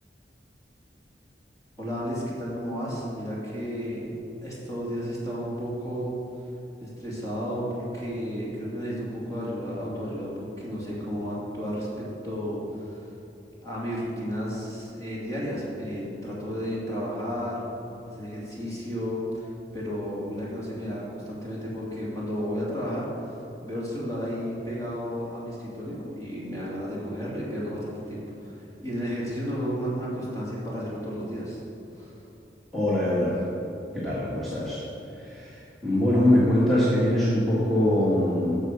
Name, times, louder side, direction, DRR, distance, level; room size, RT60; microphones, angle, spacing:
voice 1, 1.8-4.1 4.4-6.1 6.8-13.0 13.6-17.6 18.1-19.5 19.7-31.6 32.0-32.1, equal, 20° left, -6 dB, 2.6 m, -32 dB
voice 2, 32.7-33.4 33.9-34.8 35.1-38.6, left 1 dB, ahead, -10 dB, 1.7 m, -23 dB
9.6 x 6.7 x 6.7 m, 3.0 s
head